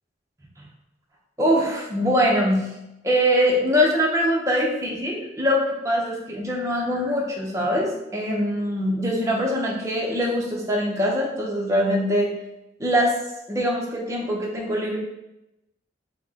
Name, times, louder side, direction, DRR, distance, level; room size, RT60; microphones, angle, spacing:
voice 1, 1.4-2.7 3.0-12.3 12.8-13.2 13.5-15.0, equal, 15° right, -2 dB, 0.6 m, -23 dB
4.1 x 2.1 x 3.6 m, 0.91 s
head